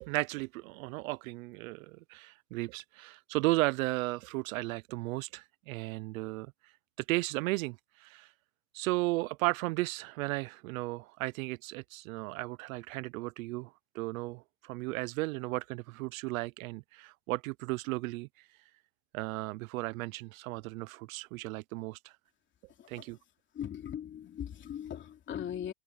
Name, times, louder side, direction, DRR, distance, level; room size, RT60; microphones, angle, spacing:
voice 1, 0.0-6.5 7.1-8.3 8.7-18.5 19.1-22.1 22.9-23.2, right 22 dB, 60° right, 0.5 m, -35 dB
voice 2, 22.7-23.2 23.5-25.7, left 9 dB, 25° left, 2.9 m, -40 dB
supercardioid pair, 160°, 47 cm